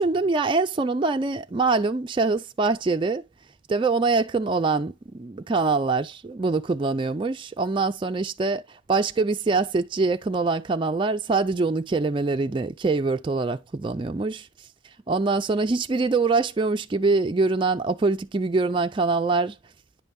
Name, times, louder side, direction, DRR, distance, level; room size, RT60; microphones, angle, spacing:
voice 1, 0.0-3.2 3.7-14.5 15.1-19.6, right 3 dB, 25° right, 0.3 m, -24 dB
9.8 x 5.4 x 2.6 m
head